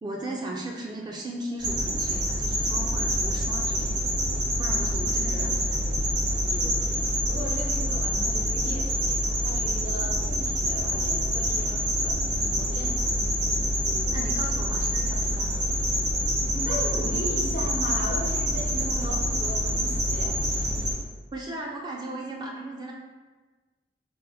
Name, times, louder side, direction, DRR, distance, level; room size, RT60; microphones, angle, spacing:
voice 1, 0.0-4.1 4.6-5.8 13.8-15.6 21.3-22.9, right 1 dB, 25° right, -1 dB, 0.3 m, -37 dB
sound 1, 1.6-20.9, equal, 75° right, 1.2 m, -26 dB
voice 2, 4.9-5.5 6.4-13.1 16.5-20.6, equal, 75° left, -1 dB, 0.8 m, -37 dB
4.0 x 2.0 x 4.0 m, 1.3 s
head